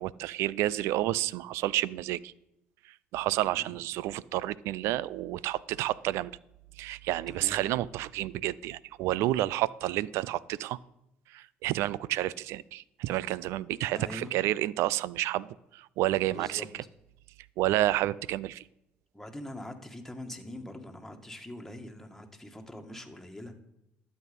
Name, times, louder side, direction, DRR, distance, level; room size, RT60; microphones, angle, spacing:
voice 1, 0.0-2.3 3.1-6.3 6.8-10.8 11.3-16.8 17.6-18.6, right 15 dB, 75° right, 21 dB, 0.4 m, -30 dB
voice 2, 7.3-7.6 13.9-14.3 16.2-16.7 19.1-23.6, left 1 dB, 5° left, 4 dB, 2.0 m, -43 dB
12.0 x 8.3 x 5.4 m, 0.85 s
supercardioid pair, 65°, 5 cm